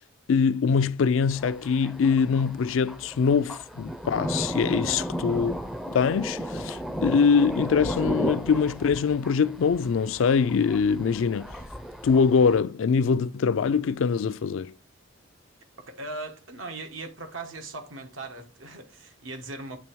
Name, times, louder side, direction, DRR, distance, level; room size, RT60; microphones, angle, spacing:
voice 1, 0.3-5.5 5.9-11.6 12.0-14.7, left 5 dB, 85° left, 0.4 m, -23 dB
Thunder, 1.3-12.6, equal, ahead, 0.4 m, -35 dB
voice 2, 4.7-5.1 15.9-19.8, right 2 dB, 85° right, 1.3 m, -39 dB
8.6 x 3.4 x 4.5 m
head